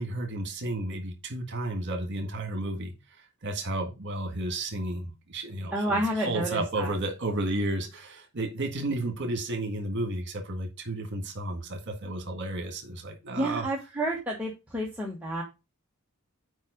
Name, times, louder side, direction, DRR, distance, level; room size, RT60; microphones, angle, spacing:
voice 1, 0.0-2.9 3.2-13.6, right 2 dB, 55° right, 1.7 m, -32 dB
voice 2, 5.7-6.9 13.3-15.4, right 1 dB, 5° right, 1.2 m, -30 dB
7.3 x 4.9 x 4.9 m
head